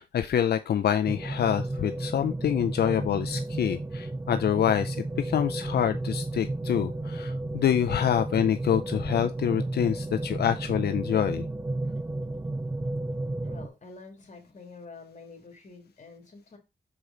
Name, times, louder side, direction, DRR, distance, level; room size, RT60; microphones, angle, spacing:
voice 1, 0.0-11.5, left 9 dB, 80° left, 0.5 m, -26 dB
sound 1, 1.1-13.7, right 2 dB, 20° right, 0.5 m, -33 dB
voice 2, 13.4-16.6, left 4 dB, 45° left, 2.3 m, -47 dB
6.2 x 4.9 x 3.9 m
cardioid pair, 80°, 17 cm